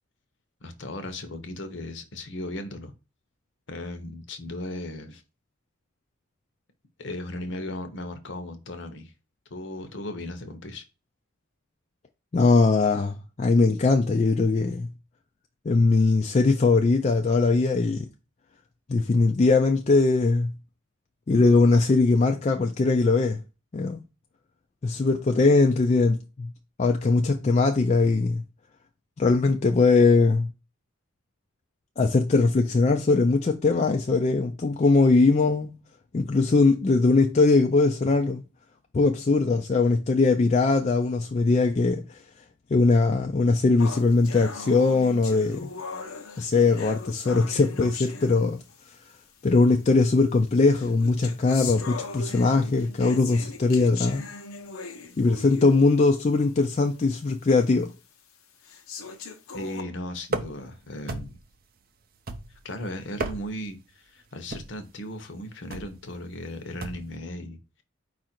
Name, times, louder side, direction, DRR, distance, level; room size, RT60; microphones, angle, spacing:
voice 1, 0.6-2.9 3.7-5.2 7.0-9.1 9.5-10.8 59.5-61.4 62.6-67.8, left 1 dB, 55° left, 0.8 m, -36 dB
voice 2, 12.3-14.9 15.7-18.0 18.9-20.5 21.3-23.4 23.7-24.0 24.8-26.5 26.8-28.4 29.2-30.5 32.0-35.8 36.1-38.4 38.9-42.2 42.7-45.7 46.4-48.6 49.4-54.2 55.2-57.9, left 3 dB, 30° left, 0.3 m, -21 dB
sound 1, 43.8-48.9 49.8-49.9 50.7-56.0 56.4-56.5 57.0-57.1 57.8-57.9 58.6-59.8, left 4 dB, 90° left, 0.8 m, -39 dB
sound 2, 60.3-60.7 61.1-61.5 62.3-62.7 63.1-63.7 64.5-64.8 65.7-66.0 66.8-67.1, right 2 dB, 45° right, 0.5 m, -34 dB
4.8 x 2.5 x 4.3 m
head